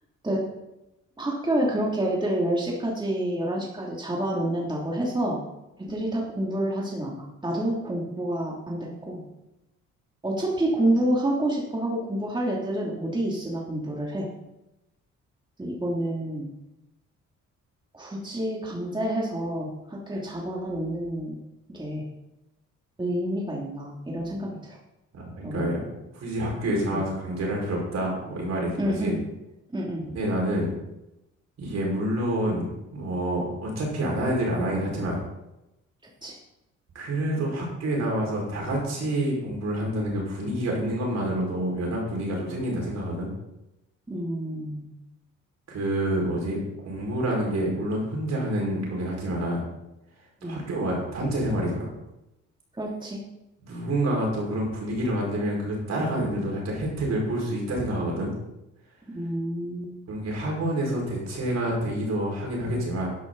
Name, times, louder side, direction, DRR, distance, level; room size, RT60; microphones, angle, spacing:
voice 1, 1.2-5.4 5.8-9.2 10.2-14.3 15.6-16.5 17.9-21.4 21.7-22.1 23.0-24.8 25.4-25.7 26.9-27.0 28.8-29.2 29.7-30.1 36.2-36.4 44.1-44.8 50.4-50.6 52.7-53.2 59.1-59.9, right 1 dB, 15° right, -3 dB, 2.8 m, -28 dB
voice 2, 25.1-25.8 26.1-29.1 30.1-30.7 31.6-32.7 32.9-35.2 37.0-43.3 45.7-49.7 50.4-52.0 53.6-58.3 60.1-63.1, right 1 dB, 60° right, -2 dB, 5.3 m, -28 dB
11.5 x 11.0 x 4.0 m, 0.92 s
cardioid pair, 90°, 30 cm